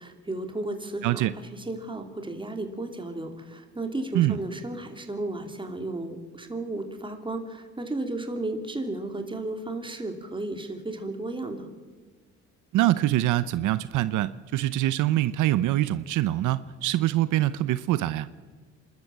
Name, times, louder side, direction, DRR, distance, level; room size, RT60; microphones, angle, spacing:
voice 1, 0.0-11.7, right 2 dB, 15° right, 5 dB, 2.8 m, -34 dB
voice 2, 1.0-1.3 4.1-4.4 12.7-18.3, right 14 dB, 85° right, 15 dB, 0.7 m, -24 dB
27.0 x 13.0 x 7.4 m, 1.4 s
cardioid pair, 90°, 30 cm